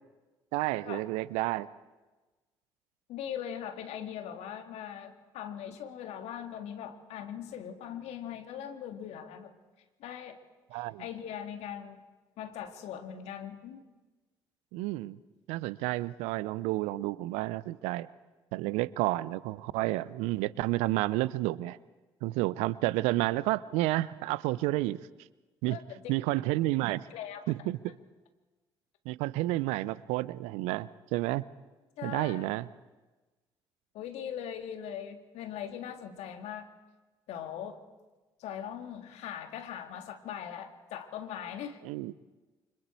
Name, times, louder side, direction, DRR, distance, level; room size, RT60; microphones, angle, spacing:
voice 1, 0.5-1.7 10.7-11.0 14.7-15.2 15.5-18.1 18.5-21.8 22.2-25.0 25.6-25.8 26.1-27.1 27.5-27.9 29.1-31.4 32.0-32.7 41.8-42.1, right 18 dB, 75° right, 19 dB, 0.6 m, -30 dB
voice 2, 3.1-9.5 10.0-10.4 10.7-12.0 12.4-13.8 25.7-26.1 27.1-27.5 32.0-32.5 33.9-36.7 37.3-37.8 38.4-41.8, left 9 dB, 70° left, 7 dB, 2.0 m, -40 dB
29.0 x 25.0 x 4.5 m, 1.2 s
hypercardioid pair, 45°, 11 cm